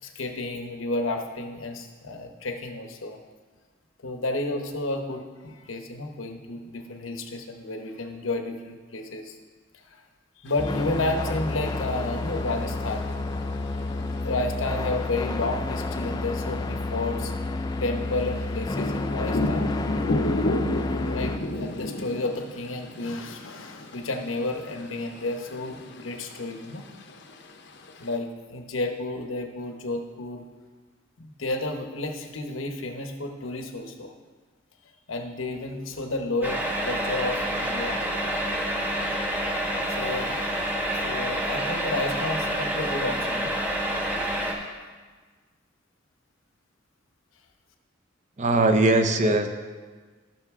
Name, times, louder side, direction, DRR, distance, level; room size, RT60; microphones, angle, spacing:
voice 1, 0.0-3.2 4.0-9.4 9.7-10.0 10.4-13.1 14.0-17.3 17.8-19.7 21.0-26.8 28.0-30.4 31.2-34.1 35.1-38.0 39.9-40.4 40.9-43.6 44.5-44.8, left 2 dB, 80° left, 4 dB, 1.0 m, -31 dB
sound 1, 10.5-28.2, left 1 dB, 60° left, 0.8 m, -34 dB
sound 2, 10.6-21.4, left 2 dB, 20° left, 0.3 m, -30 dB
sound 3, 36.4-44.5, right 1 dB, 10° right, 1.1 m, -28 dB
voice 2, 48.4-49.5, right 2 dB, 35° right, 6 dB, 0.6 m, -20 dB
14.5 x 6.5 x 3.7 m, 1.4 s
head